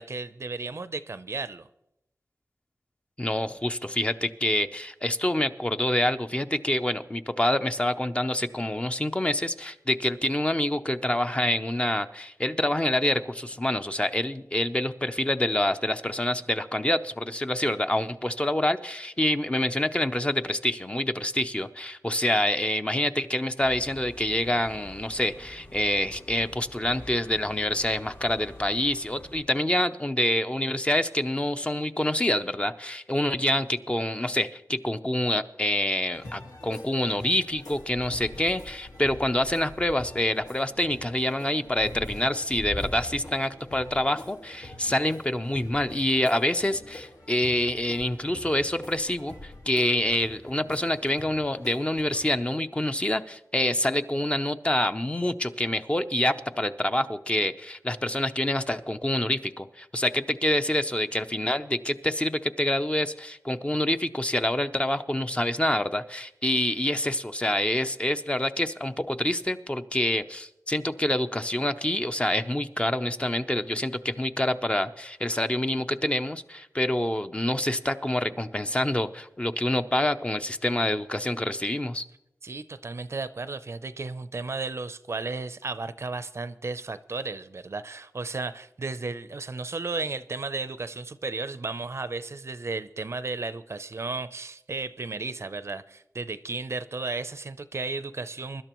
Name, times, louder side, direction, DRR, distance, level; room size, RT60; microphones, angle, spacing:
voice 1, 0.0-1.7 82.4-98.6, right 3 dB, 45° right, 0.5 m, -34 dB
voice 2, 3.2-82.0, left 1 dB, 20° left, 0.6 m, -27 dB
sound 1, 23.6-29.4, left 2 dB, 45° left, 6.6 m, -47 dB
sound 2, 36.1-52.3, left 1 dB, 75° left, 1.9 m, -43 dB
23.5 x 12.0 x 3.0 m
wide cardioid pair, 100°, 6 cm